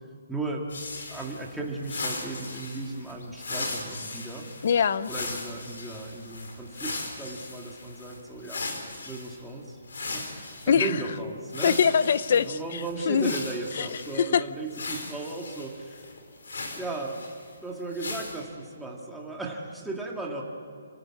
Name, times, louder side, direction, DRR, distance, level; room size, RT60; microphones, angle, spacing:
voice 1, 0.3-4.5 5.1-8.6 9.1-9.8 10.1-11.8 12.3-16.0 16.8-17.2 17.6-20.4, right 2 dB, ahead, -2 dB, 1.9 m, -36 dB
sound 1, 0.7-9.4 9.9-11.0 11.5-14.2 14.7-17.5 17.9-18.4, left 3 dB, 75° left, 5.0 m, -38 dB
voice 2, 4.6-5.1 10.7-10.9 11.6-13.3 13.8-13.9 14.1-14.4, left 7 dB, 45° left, 16 dB, 0.7 m, -23 dB
27.5 x 17.0 x 8.6 m, 2.3 s
hypercardioid pair, 175°, 0 cm